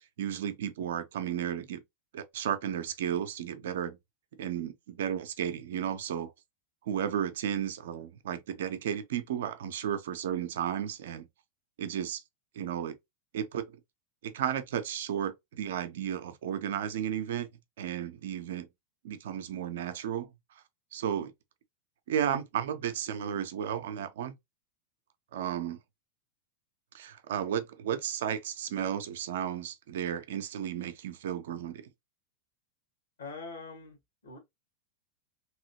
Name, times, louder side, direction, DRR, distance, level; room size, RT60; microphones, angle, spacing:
voice 1, 0.2-1.8 2.1-4.0 4.4-6.3 6.8-11.3 11.8-12.2 12.6-13.0 13.3-13.6 14.2-17.5 17.8-18.7 19.0-20.3 20.9-21.3 22.1-24.3 25.3-25.8 26.9-31.8, right 9 dB, 60° right, 0.5 m, -33 dB
voice 2, 33.2-34.4, left 3 dB, 65° left, 1.4 m, -44 dB
3.0 x 2.7 x 2.8 m
figure-of-eight pair, 90°, 0 cm